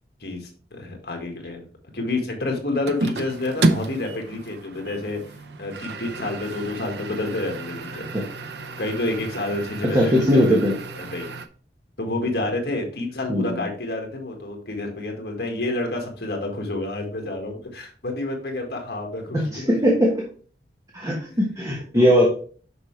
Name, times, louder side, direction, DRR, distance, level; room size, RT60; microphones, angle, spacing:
voice 1, 0.2-1.6 1.9-5.2 5.6-8.0 8.8-10.6 11.0-11.3 12.0-19.8 21.9-22.0, left 2 dB, 65° left, 2 dB, 1.8 m, -29 dB
sound 1, 2.9-11.5, right 2 dB, 75° right, 0.7 m, -30 dB
voice 2, 9.8-10.7 13.3-13.6 19.3-20.1 20.9-22.3, equal, 20° right, -2 dB, 1.3 m, -19 dB
6.6 x 5.8 x 3.2 m, 0.42 s
head